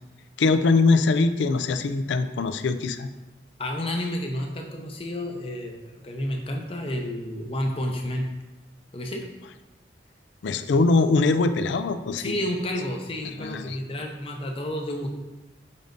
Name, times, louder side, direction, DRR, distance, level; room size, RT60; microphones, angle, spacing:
voice 1, 0.4-3.1 10.4-12.4 13.4-13.8, left 3 dB, 80° left, 10 dB, 0.4 m, -22 dB
voice 2, 3.6-8.3 8.9-9.3 12.2-15.1, left 1 dB, 30° left, 2 dB, 0.7 m, -30 dB
7.1 x 5.2 x 2.6 m, 1.1 s
head